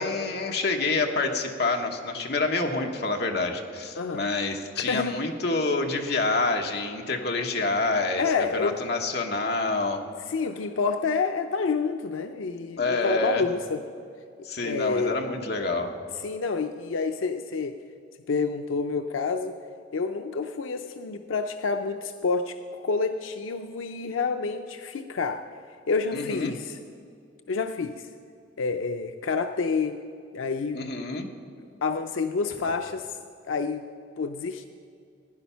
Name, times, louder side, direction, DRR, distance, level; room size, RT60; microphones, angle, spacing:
voice 1, 0.0-10.0 12.8-13.4 14.4-16.0 26.1-26.5 30.7-31.3, left 3 dB, 55° left, 3 dB, 1.1 m, -27 dB
voice 2, 4.0-4.3 4.8-5.2 8.2-8.8 10.3-13.8 14.6-15.2 16.2-17.8 18.3-19.6 19.9-25.4 25.9-26.8 27.5-28.1 28.6-30.0 30.3-30.9 31.8-33.2 33.5-33.9 34.2-34.7, left 4 dB, 90° left, 7 dB, 0.5 m, -28 dB
16.0 x 10.0 x 5.6 m, 2.4 s
head